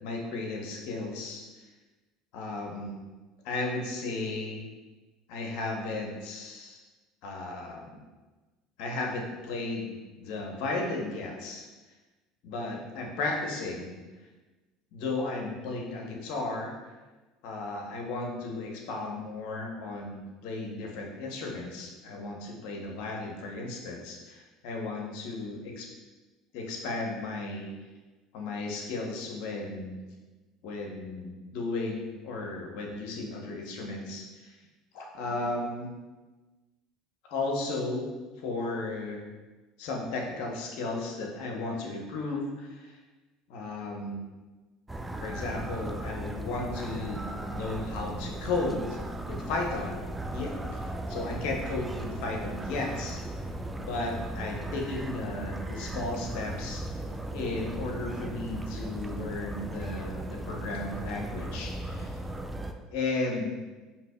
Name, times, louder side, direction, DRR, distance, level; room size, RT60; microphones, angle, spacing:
voice 1, 0.0-1.4 2.3-3.0 3.4-4.7 5.3-6.8 7.2-8.0 8.8-11.7 12.4-14.0 14.9-16.7 17.4-25.9 26.5-27.7 28.3-30.0 30.6-34.6 34.9-35.9 37.3-38.1 38.4-39.2 39.8-43.0 43.5-44.3 45.2-50.1 50.3-53.2 53.8-56.8 57.3-62.2 62.9-63.6, left 3 dB, 70° left, 0 dB, 0.7 m, -34 dB
sound 1, 44.9-62.7, right 1 dB, 10° right, 0.3 m, -37 dB
5.1 x 2.8 x 2.2 m, 1.2 s
hypercardioid pair, 80°, 0 cm